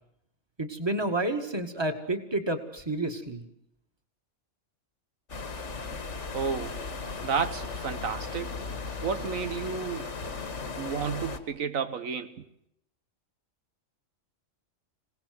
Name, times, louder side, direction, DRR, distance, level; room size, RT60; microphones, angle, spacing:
voice 1, 0.6-3.4, right 2 dB, 20° right, 2.2 m, -30 dB
sound 1, 5.3-11.4, left 4 dB, 60° left, 2.0 m, -36 dB
voice 2, 6.3-6.8 7.2-8.6 9.0-10.1 10.8-12.4, right 6 dB, 80° right, 1.5 m, -31 dB
26.5 x 18.5 x 7.9 m
omnidirectional pair, 1.4 m